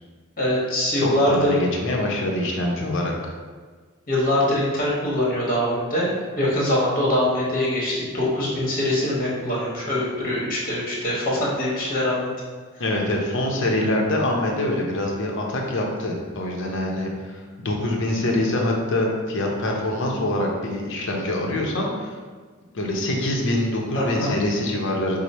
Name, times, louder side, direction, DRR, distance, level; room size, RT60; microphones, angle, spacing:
voice 1, 0.4-1.6 4.1-12.3 23.9-24.3, left 1 dB, 45° left, -5 dB, 1.2 m, -23 dB
voice 2, 1.0-3.1 12.8-22.1 22.7-25.2, left 1 dB, 60° left, 0 dB, 0.7 m, -24 dB
4.7 x 2.0 x 4.1 m, 1.5 s
head